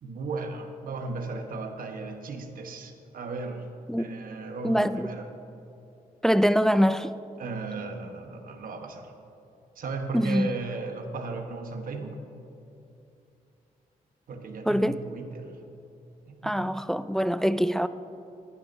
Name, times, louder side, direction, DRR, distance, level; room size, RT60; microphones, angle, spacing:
voice 1, 0.0-3.7 4.0-5.3 7.4-9.1 9.7-12.2 14.3-15.6 16.3-16.7 16.9-17.0, right 3 dB, 70° right, 1.2 m, -36 dB
voice 2, 4.6-5.1 6.2-7.1 10.1-10.5 14.7-15.0 16.4-17.9, equal, 5° left, 0.3 m, -24 dB
18.5 x 11.5 x 2.7 m
cardioid pair, 90°, 15 cm